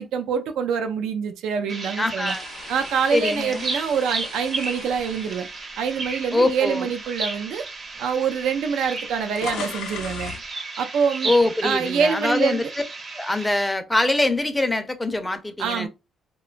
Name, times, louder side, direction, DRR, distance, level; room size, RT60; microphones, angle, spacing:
voice 1, 0.0-2.4 2.7-5.5 5.8-7.7 8.0-10.3 10.8-11.3 11.6-12.7 15.6-15.9, right 6 dB, 85° right, 0.4 m, -25 dB
sound 1, 1.7-13.7, right 3 dB, 45° right, 0.7 m, -34 dB
voice 2, 2.0-2.4 3.1-3.6 6.3-6.9 11.2-12.6 13.1-15.9, left 2 dB, 10° left, 0.5 m, -23 dB
sound 2, 2.3-6.5 7.0-7.2 8.1-8.2 8.4-10.5, left 7 dB, 85° left, 0.4 m, -39 dB
2.8 x 2.2 x 2.4 m
cardioid pair, 90°, 0 cm